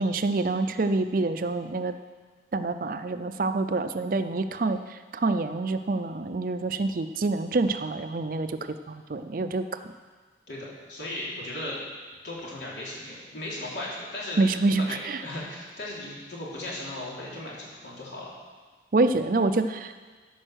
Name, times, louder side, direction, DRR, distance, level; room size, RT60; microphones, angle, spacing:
voice 1, 0.0-1.9 2.5-9.6 14.4-15.2 18.9-19.9, right 3 dB, 50° right, 10 dB, 0.5 m, -26 dB
voice 2, 10.5-11.8 12.2-18.3, left 1 dB, 80° left, -5 dB, 3.2 m, -37 dB
13.5 x 5.5 x 6.3 m, 1.4 s
head